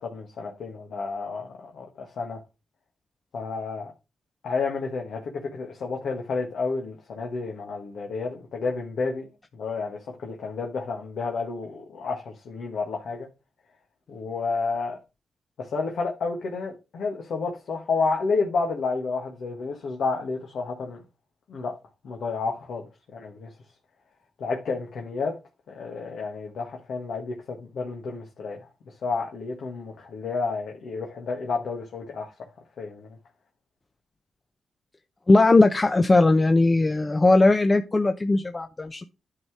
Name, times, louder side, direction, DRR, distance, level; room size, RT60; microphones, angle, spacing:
voice 1, 0.0-2.4 3.3-3.9 4.4-13.3 14.1-15.0 15.6-21.0 21.5-21.8 22.0-23.5 24.4-25.4 25.7-28.7 29.0-32.5 32.8-33.1, left 4 dB, 70° left, 1.6 m, -30 dB
voice 2, 35.3-39.0, left 2 dB, 30° left, 0.8 m, -19 dB
10.5 x 4.1 x 4.7 m
supercardioid pair, 45°, 0 cm